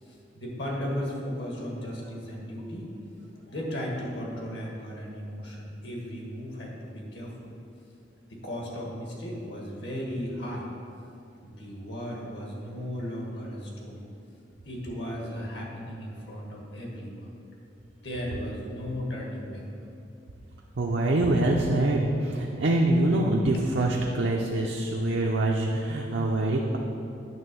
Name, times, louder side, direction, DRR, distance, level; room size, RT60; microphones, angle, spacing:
voice 1, 0.1-2.9 3.4-7.5 8.3-10.7 11.4-14.0 14.6-17.3 18.0-19.6, equal, 65° left, -2 dB, 1.6 m, -36 dB
voice 2, 20.8-26.8, right 1 dB, 65° right, -1 dB, 0.6 m, -25 dB
9.0 x 3.4 x 6.7 m, 2.7 s
head